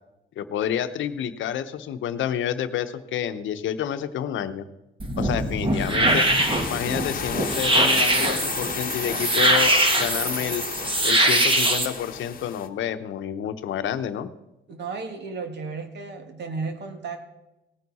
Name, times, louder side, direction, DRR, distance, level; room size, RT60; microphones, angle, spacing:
voice 1, 0.4-4.7 5.2-6.3 6.7-10.6 11.0-14.3, left 9 dB, 75° left, 10 dB, 0.8 m, -29 dB
sound 1, 5.0-11.9, right 1 dB, 25° right, 1.7 m, -22 dB
voice 2, 5.7-6.2 14.7-17.2, right 4 dB, 60° right, 6 dB, 1.9 m, -33 dB
sound 2, 6.0-12.7, left 7 dB, 45° left, 1.0 m, -33 dB
18.0 x 9.3 x 4.2 m, 0.96 s
cardioid pair, 90°, 20 cm